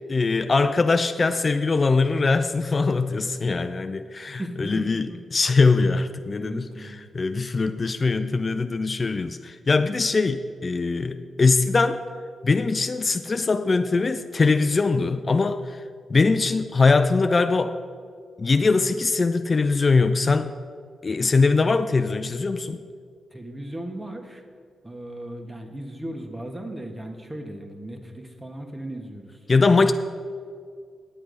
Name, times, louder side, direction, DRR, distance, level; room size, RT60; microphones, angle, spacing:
voice 1, 0.1-5.1 5.3-12.0 12.4-15.8 16.1-17.7 18.4-20.5 21.0-22.8 29.5-29.9, left 4 dB, 45° left, 9 dB, 0.4 m, -22 dB
voice 2, 4.4-5.2 6.4-7.0 23.3-24.4 24.8-29.3, right 1 dB, 20° right, 4 dB, 1.5 m, -36 dB
9.9 x 7.8 x 5.2 m, 2.1 s
supercardioid pair, 50°, 0 cm